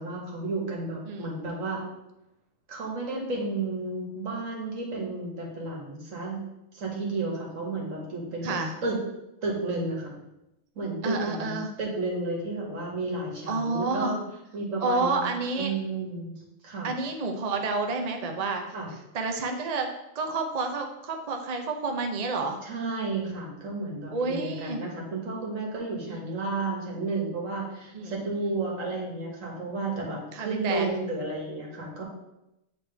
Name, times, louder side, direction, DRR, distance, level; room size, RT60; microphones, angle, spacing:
voice 1, 0.0-1.8 2.7-6.4 6.7-9.0 9.4-10.1 10.8-14.2 14.5-16.3 16.6-16.9 18.7-18.9 22.6-32.0, right 2 dB, 75° right, -1 dB, 1.8 m, -32 dB
voice 2, 1.1-1.4 8.4-8.7 11.0-11.7 13.5-14.1 14.8-15.7 16.8-18.7 19.1-19.9 20.1-22.6 24.1-24.8 26.1-26.2 26.6-26.7 27.9-28.6 30.3-30.9, right 3 dB, 40° right, 4 dB, 0.6 m, -29 dB
7.9 x 4.3 x 3.4 m, 0.90 s
omnidirectional pair, 1.4 m